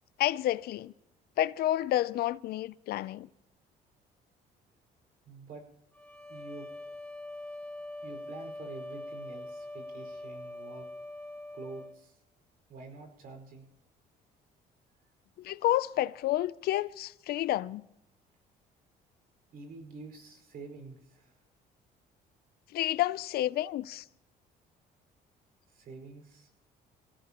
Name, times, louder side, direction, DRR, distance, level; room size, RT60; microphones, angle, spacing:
voice 1, 0.2-0.9 1.4-3.3 15.4-17.8 22.7-24.0, left 14 dB, 65° left, 0.5 m, -30 dB
voice 2, 5.3-5.7 6.3-6.7 8.0-10.9 11.5-12.2 12.7-13.7 19.5-21.4 25.7-26.5, right 3 dB, 60° right, 5.0 m, -47 dB
sound 1, 5.9-12.0, left 1 dB, 10° left, 1.8 m, -43 dB
26.5 x 17.0 x 3.0 m
cardioid pair, 110°, 17 cm